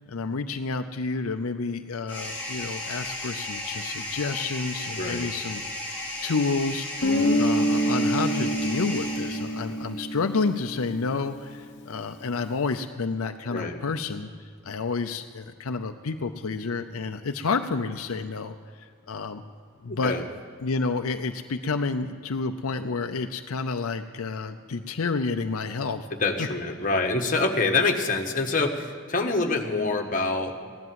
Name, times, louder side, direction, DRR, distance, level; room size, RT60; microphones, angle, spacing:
voice 1, 0.1-5.7 5.9-14.3 14.6-19.4 19.8-20.1 20.6-26.1, left 4 dB, 80° left, 6 dB, 0.6 m, -30 dB
sound 1, 2.1-9.8, left 1 dB, 10° left, 5.2 m, -35 dB
voice 2, 5.0-5.3 7.1-7.3 13.5-13.8 19.9-20.3 26.2-30.6, left 3 dB, 40° left, 3 dB, 1.4 m, -26 dB
Guitar, 7.0-11.6, equal, 55° left, 1.0 m, -26 dB
16.0 x 11.0 x 7.6 m, 2.1 s
head